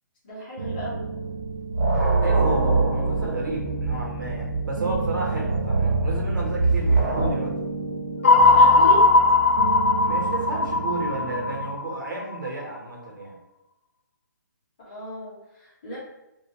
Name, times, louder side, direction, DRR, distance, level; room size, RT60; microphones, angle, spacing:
voice 1, 0.2-1.0 8.4-9.0 14.8-16.0, equal, 25° left, -8 dB, 1.2 m, -34 dB
sound 1, 0.6-11.8, right 4 dB, 35° right, 0.3 m, -33 dB
sound 2, 0.7-1.1 1.4-7.3, right 3 dB, 55° right, 1.3 m, -24 dB
voice 2, 2.2-7.5 10.0-13.4, right 2 dB, 75° right, -1 dB, 1.2 m, -31 dB
sound 3, 8.2-12.5, left 3 dB, 40° left, 0.4 m, -18 dB
3.3 x 2.7 x 2.9 m, 0.96 s
hypercardioid pair, 175°, 11 cm